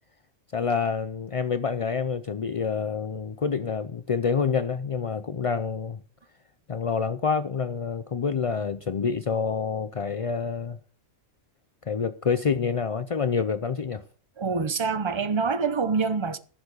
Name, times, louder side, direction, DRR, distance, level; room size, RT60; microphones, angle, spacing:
voice 1, 0.5-6.0 6.7-10.8 11.9-14.0, left 5 dB, 50° left, 0.4 m, -27 dB
voice 2, 14.4-16.4, right 5 dB, 25° right, 0.7 m, -26 dB
15.5 x 7.2 x 6.3 m
omnidirectional pair, 1.4 m